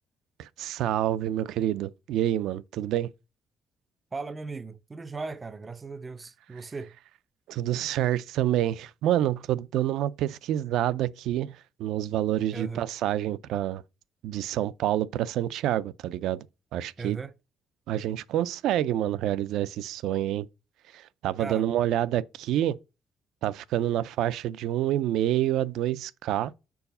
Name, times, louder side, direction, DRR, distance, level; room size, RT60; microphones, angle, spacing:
voice 1, 0.4-3.1 7.5-13.8 14.2-16.4 16.7-17.2 17.9-20.5 20.9-22.8 23.4-26.5, right 12 dB, 85° right, 0.4 m, -27 dB
voice 2, 4.1-7.0 12.5-12.9 17.0-17.3 21.4-21.7, right 4 dB, 25° right, 0.4 m, -37 dB
4.8 x 4.7 x 5.4 m
cardioid pair, 115°, 0 cm